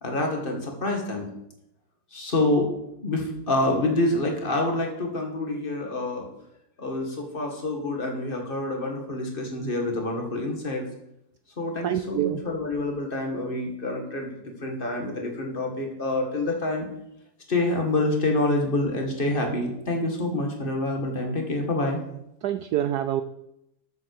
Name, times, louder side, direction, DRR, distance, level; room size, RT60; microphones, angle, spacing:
voice 1, 0.0-1.3 2.1-2.7 3.0-6.3 6.8-10.8 11.6-16.9 17.5-22.0, left 2 dB, 30° left, 2.1 m, -27 dB
voice 2, 11.8-12.4 22.4-23.2, right 11 dB, 70° right, 1.0 m, -26 dB
13.0 x 7.7 x 4.9 m
omnidirectional pair, 2.0 m